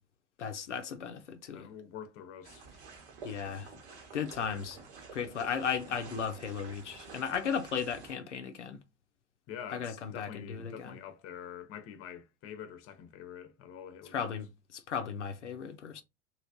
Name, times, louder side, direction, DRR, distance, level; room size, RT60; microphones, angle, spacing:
voice 1, 0.4-1.7 3.2-3.7 4.1-4.8 5.1-8.8 9.7-11.0 14.1-16.0, left 7 dB, 90° left, 0.5 m, -36 dB
voice 2, 1.5-2.8 9.5-14.3, left 9 dB, 40° left, 0.7 m, -46 dB
sound 1, 2.4-8.1, right 5 dB, 70° right, 1.4 m, -50 dB
3.0 x 2.8 x 2.7 m
figure-of-eight pair, 75°, 34 cm